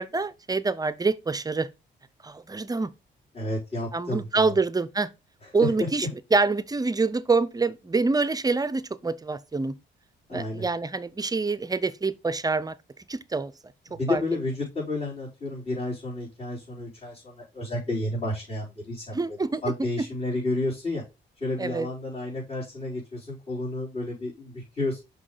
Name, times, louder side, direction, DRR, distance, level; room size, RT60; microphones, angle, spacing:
voice 1, 0.0-1.7 2.2-2.9 3.9-5.1 5.5-9.7 10.3-12.7 13.1-13.5 14.1-14.2 19.1-19.6 20.0-20.1 21.6-21.9, right 3 dB, 20° right, 0.5 m, -26 dB
voice 2, 3.3-4.5 5.6-5.9 10.3-10.7 13.9-19.2 19.6-21.0 21.4-25.0, left 2 dB, 35° left, 4.2 m, -31 dB
6.2 x 5.5 x 3.9 m
cardioid pair, 90°, 20 cm